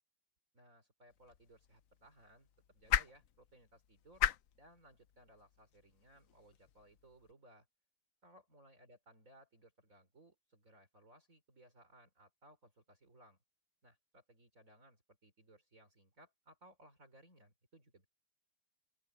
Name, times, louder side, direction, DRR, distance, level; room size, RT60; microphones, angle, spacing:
voice 1, 0.5-4.2 4.5-7.7 8.2-13.4 13.8-18.1, right 1 dB, 45° right, 5.2 m, -63 dB
sound 1, 1.1-7.3, left 10 dB, 60° left, 0.9 m, -41 dB
open air
omnidirectional pair, 1.9 m